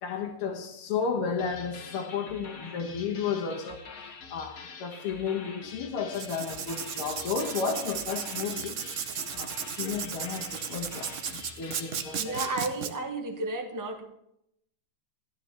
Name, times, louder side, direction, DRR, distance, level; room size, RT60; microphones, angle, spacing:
voice 1, 0.0-3.8 4.3-8.8 9.3-12.4, left 6 dB, 90° left, 1 dB, 2.1 m, -33 dB
sound 1, 1.4-12.7, left 5 dB, 50° left, 1.3 m, -46 dB
Writing, 6.1-12.9, right 7 dB, 85° right, 0.6 m, -35 dB
voice 2, 12.2-14.1, right 2 dB, 20° right, 4 dB, 0.4 m, -32 dB
13.5 x 12.0 x 3.3 m, 0.78 s
omnidirectional pair, 2.4 m